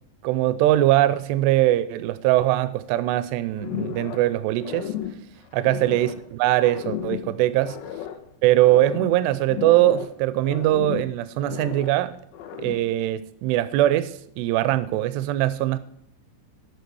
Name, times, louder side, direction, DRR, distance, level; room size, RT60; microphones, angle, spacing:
voice 1, 0.2-4.9 5.5-7.8 8.4-12.1 12.6-15.8, right 15 dB, 90° right, 2.7 m, -21 dB
sound 1, 3.6-4.3 4.6-6.3 6.6-8.3 8.6-10.2 10.4-12.0 12.3-13.0, left 10 dB, 80° left, 2.5 m, -34 dB
12.0 x 6.6 x 4.7 m
omnidirectional pair, 4.8 m